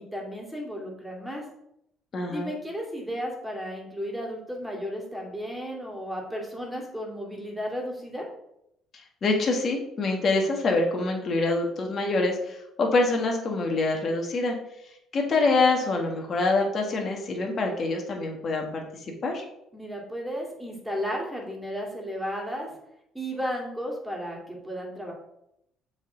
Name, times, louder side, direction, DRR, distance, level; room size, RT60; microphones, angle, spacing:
voice 1, 0.0-1.4 2.3-8.3 19.7-22.8 23.1-25.1, equal, ahead, -2 dB, 2.4 m, -34 dB
voice 2, 2.1-2.5 8.9-14.6 15.1-18.8 19.2-19.4, left 3 dB, 45° left, 1 dB, 1.5 m, -25 dB
7.1 x 3.8 x 3.9 m, 0.79 s
supercardioid pair, 80°, 0 cm